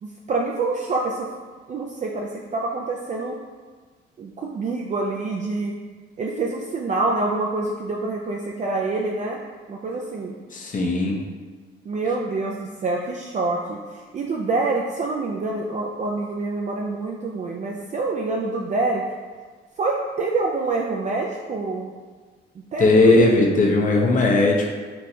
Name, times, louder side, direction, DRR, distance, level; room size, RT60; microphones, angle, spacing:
voice 1, 0.0-1.3 1.7-3.4 4.2-5.8 6.2-9.4 9.7-10.3 11.9-13.8 14.1-19.0 19.8-21.9 22.7-23.4, right 3 dB, 35° right, -1 dB, 0.4 m, -26 dB
voice 2, 10.5-11.2 22.8-24.7, left 2 dB, 40° left, 0 dB, 0.7 m, -18 dB
4.4 x 3.1 x 2.7 m, 1.5 s
cardioid pair, 90°, 20 cm